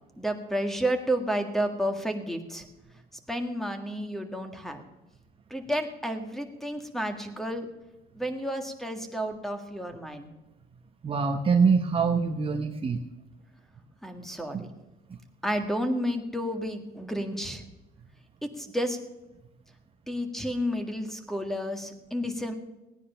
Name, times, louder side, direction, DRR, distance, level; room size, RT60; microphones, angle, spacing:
voice 1, 0.2-2.7 3.3-4.8 5.5-7.7 8.1-10.3 14.0-14.6 15.4-17.6 18.6-19.0 20.1-22.5, equal, ahead, 6 dB, 1.8 m, -31 dB
voice 2, 11.0-13.0 14.5-14.6, right 5 dB, 35° right, 4 dB, 1.0 m, -24 dB
16.5 x 9.9 x 5.7 m, 1.0 s
cardioid pair, 110°, 17 cm